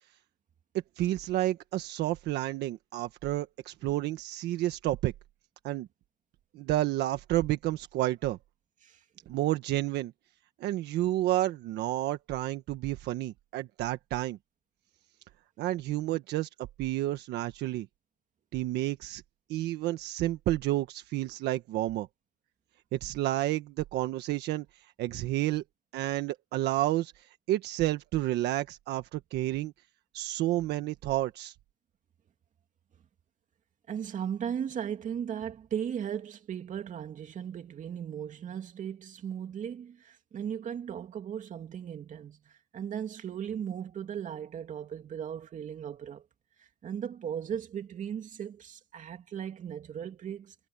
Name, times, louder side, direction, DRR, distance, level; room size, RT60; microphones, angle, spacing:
voice 1, 1.0-5.1 5.6-5.9 6.5-8.4 9.3-10.1 10.6-14.4 15.6-16.5 16.8-17.9 18.5-19.2 19.5-22.1 22.9-24.6 25.0-25.6 25.9-27.1 27.5-29.7 30.1-31.5, right 15 dB, 80° right, 1.5 m, -30 dB
voice 2, 33.9-46.3 46.6-50.5, right 8 dB, 50° right, 2.7 m, -37 dB
cardioid pair, 110°, 17 cm